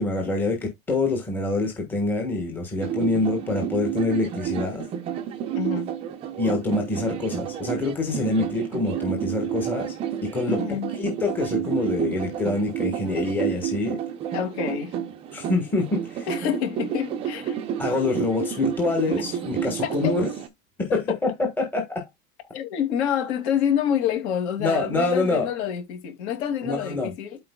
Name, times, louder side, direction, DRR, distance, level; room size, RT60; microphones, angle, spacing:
voice 1, 0.0-4.8 6.4-9.9 10.2-10.6 11.0-14.0 15.3-16.3 17.8-20.3 20.8-22.0 24.6-25.5 26.6-27.1, left 3 dB, 5° left, 1.3 m, -25 dB
sound 1, 2.8-20.5, right 9 dB, 15° right, 0.5 m, -30 dB
voice 2, 5.5-5.9 10.5-10.9 14.3-14.9 16.3-17.6 19.8-20.1 22.5-27.4, left 9 dB, 50° left, 2.6 m, -27 dB
12.5 x 4.5 x 2.2 m
supercardioid pair, 170°, 42 cm